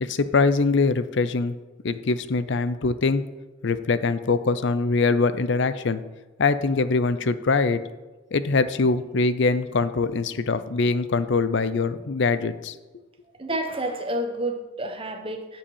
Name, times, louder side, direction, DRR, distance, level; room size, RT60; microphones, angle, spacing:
voice 1, 0.0-1.5 1.8-3.2 3.6-6.0 6.4-7.8 8.3-12.7, left 4 dB, 65° left, 13 dB, 0.6 m, -23 dB
voice 2, 13.4-15.6, right 1 dB, 30° right, 5 dB, 1.2 m, -29 dB
7.6 x 7.0 x 7.2 m, 1.2 s
head